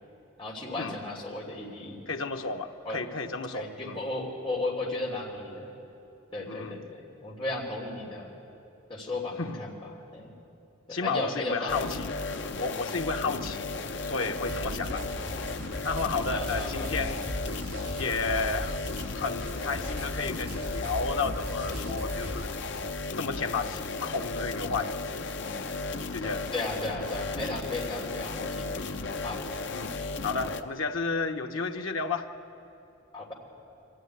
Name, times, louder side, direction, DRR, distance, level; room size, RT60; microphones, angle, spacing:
voice 1, 0.4-2.0 2.8-3.0 3.5-5.7 6.3-8.3 8.9-9.7 10.1-10.3 10.9-11.8 16.3-16.9 26.5-29.4 33.1-33.3, left 2 dB, 25° left, -3 dB, 3.2 m, -35 dB
voice 2, 2.1-4.0 6.5-6.8 9.4-9.6 10.9-12.1 12.5-13.8 14.0-15.0 15.8-17.2 18.0-18.8 19.1-22.5 23.2-25.0 25.5-25.6 26.1-26.5 29.7-29.9 30.2-32.3, left 4 dB, 90° left, 5 dB, 1.1 m, -32 dB
sound 1, 11.7-30.6, left 3 dB, 60° left, 0.8 m, -35 dB
sound 2, 14.5-22.5, equal, 60° right, 5.3 m, -38 dB
24.0 x 14.5 x 9.5 m, 2.9 s
head